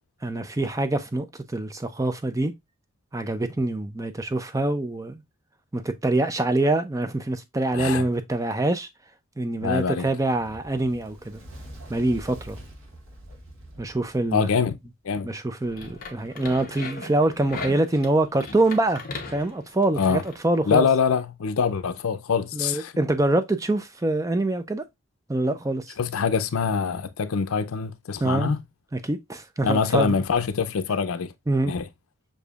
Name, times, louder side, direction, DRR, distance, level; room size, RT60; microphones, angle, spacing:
voice 1, 0.2-2.5 3.1-5.2 5.7-8.9 9.4-11.4 11.9-12.6 13.8-14.5 15.2-19.0 19.3-20.9 22.5-24.8 25.3-25.9 28.2-28.5 28.9-30.2 31.5-31.7, right 2 dB, 15° right, 0.4 m, -25 dB
voice 2, 7.7-8.0 9.6-10.1 14.3-14.8 15.0-15.3 20.0-20.2 20.7-22.9 26.0-28.6 29.6-31.3 31.6-31.9, left 6 dB, 80° left, 0.5 m, -24 dB
Fire, 10.2-14.8, right 1 dB, 70° right, 1.1 m, -44 dB
sound 1, 15.6-20.4, left 3 dB, 40° left, 0.8 m, -38 dB
6.7 x 2.6 x 2.3 m
head